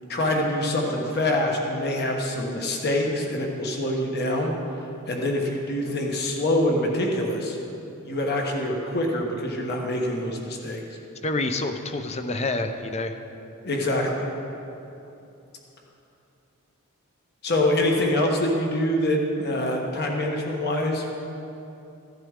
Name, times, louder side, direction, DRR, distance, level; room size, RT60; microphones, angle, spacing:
voice 1, 0.1-4.5 5.1-7.6 8.0-10.8 13.6-14.3 17.4-21.0, left 1 dB, 50° left, 0 dB, 1.3 m, -25 dB
voice 2, 11.2-13.2, left 2 dB, 30° left, 7 dB, 0.6 m, -27 dB
15.5 x 12.0 x 3.7 m, 2.9 s
head